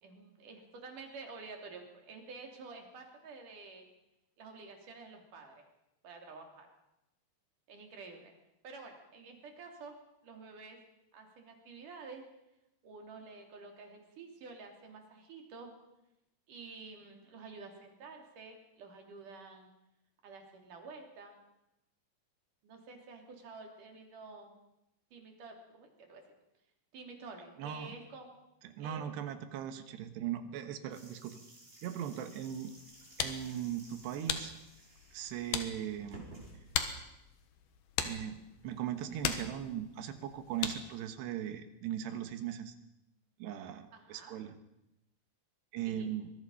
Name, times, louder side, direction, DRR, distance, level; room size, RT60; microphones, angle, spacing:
voice 1, 0.0-3.9 4.4-5.6 6.0-6.7 7.7-8.3 8.6-10.8 11.1-12.2 12.8-15.7 16.5-19.7 20.2-21.4 22.6-24.5 25.1-26.2 26.9-28.3 28.8-29.1 43.9-44.4 45.8-46.2, right 4 dB, 50° right, 3 dB, 4.5 m, -50 dB
voice 2, 27.6-28.0 28.8-31.4 31.8-32.7 33.2-34.6 35.1-36.3 38.0-42.8 43.4-44.6 45.7-46.3, right 10 dB, 80° right, 9 dB, 3.5 m, -39 dB
sound 1, 30.9-37.1, right 1 dB, 15° right, 4.8 m, -56 dB
sound 2, 32.8-41.1, left 8 dB, 70° left, 3.2 m, -40 dB
24.5 x 21.0 x 5.7 m, 0.89 s
omnidirectional pair, 4.8 m